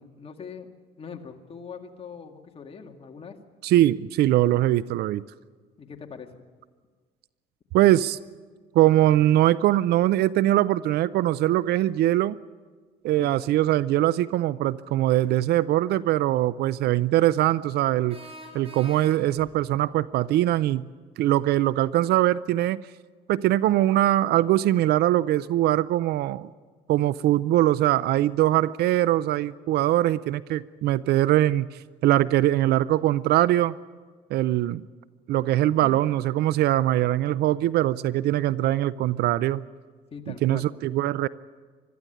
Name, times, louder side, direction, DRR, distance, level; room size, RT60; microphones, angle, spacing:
voice 1, 0.0-3.4 5.8-6.4 13.2-13.3 35.8-36.0 40.1-40.7, left 6 dB, 35° left, 4 dB, 2.1 m, -42 dB
voice 2, 3.6-5.2 7.7-8.2 8.7-12.4 13.0-18.2 18.5-20.8 21.2-22.8 23.3-26.5 26.9-31.7 32.0-33.7 34.3-34.8 35.3-39.6 40.3-41.3, right 14 dB, 75° right, 18 dB, 0.5 m, -22 dB
sound 1, 15.8-15.9 18.1-19.5, right 1 dB, 35° right, 6.2 m, -44 dB
21.5 x 13.0 x 9.9 m, 1.5 s
cardioid pair, 110°, 17 cm